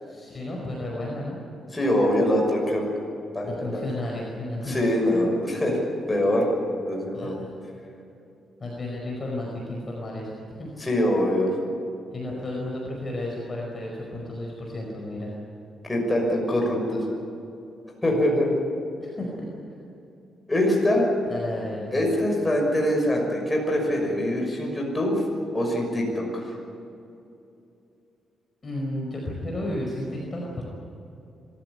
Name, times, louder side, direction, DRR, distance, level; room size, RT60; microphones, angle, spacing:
voice 1, 0.0-1.4 3.4-4.8 7.1-7.5 8.6-10.3 10.6-10.7 12.1-15.3 19.0-19.5 21.3-21.9 28.6-30.6, left 1 dB, 30° left, -2 dB, 4.9 m, -33 dB
voice 2, 1.7-2.9 3.3-3.8 4.7-5.8 6.1-6.5 6.8-7.4 10.8-11.5 15.8-17.0 18.0-18.5 20.5-21.1 21.9-25.2 25.5-26.6, left 1 dB, 15° left, -1 dB, 6.2 m, -23 dB
25.0 x 14.5 x 9.9 m, 2.7 s
cardioid pair, 115°, 0 cm